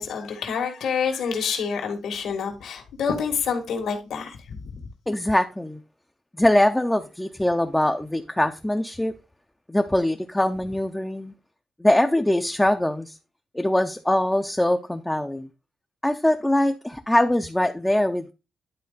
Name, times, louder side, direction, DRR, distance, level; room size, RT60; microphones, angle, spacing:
voice 1, 0.0-4.8, left 6 dB, 75° left, 1.8 m, -28 dB
voice 2, 5.1-5.8 6.4-9.1 9.7-11.3 11.8-13.2 13.5-15.5 16.0-18.3, left 1 dB, 5° left, 0.4 m, -22 dB
10.5 x 4.2 x 3.9 m
wide cardioid pair, 170°, 0 cm